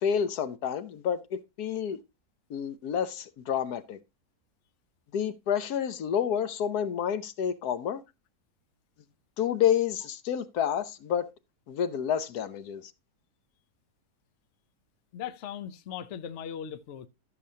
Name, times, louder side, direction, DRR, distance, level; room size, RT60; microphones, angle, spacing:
voice 1, 0.0-2.0 2.5-4.0 5.1-8.0 9.4-11.3 11.7-12.9, left 8 dB, 75° left, 1.3 m, -29 dB
voice 2, 15.1-17.1, left 8 dB, 55° left, 0.9 m, -38 dB
14.0 x 7.0 x 2.8 m
omnidirectional pair, 1.7 m